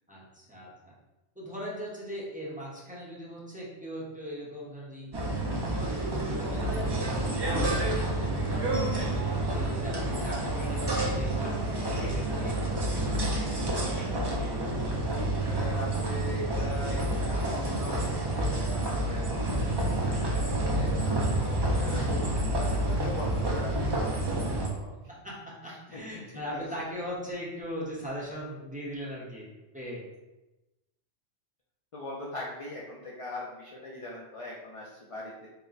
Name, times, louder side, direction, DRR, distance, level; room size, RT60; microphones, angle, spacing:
voice 1, 0.1-0.9 1.3-6.0 6.4-13.0 13.5-14.4 21.9-22.0 22.4-22.9 25.1-30.0, equal, 5° right, -6 dB, 0.8 m, -40 dB
sound 1, 5.1-24.7, right 1 dB, 45° right, 0.3 m, -29 dB
voice 2, 8.9-9.2 14.0-14.3 15.4-22.3 22.8-25.0 25.6-26.0 26.5-26.6 31.9-35.5, left 2 dB, 45° left, -4 dB, 0.4 m, -41 dB
4.5 x 2.1 x 3.9 m, 1.0 s
omnidirectional pair, 1.2 m